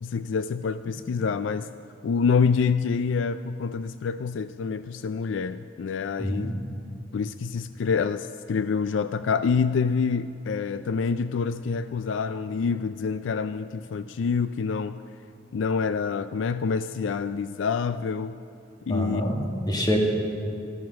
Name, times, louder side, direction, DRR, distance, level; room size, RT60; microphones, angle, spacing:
voice 1, 0.0-1.7 2.0-6.6 7.1-15.0 15.5-18.4 18.9-19.3, left 5 dB, 70° left, 13 dB, 0.4 m, -27 dB
voice 2, 6.2-6.5 18.9-20.0, equal, 20° left, 1 dB, 2.0 m, -26 dB
14.0 x 14.0 x 6.2 m, 2.6 s
head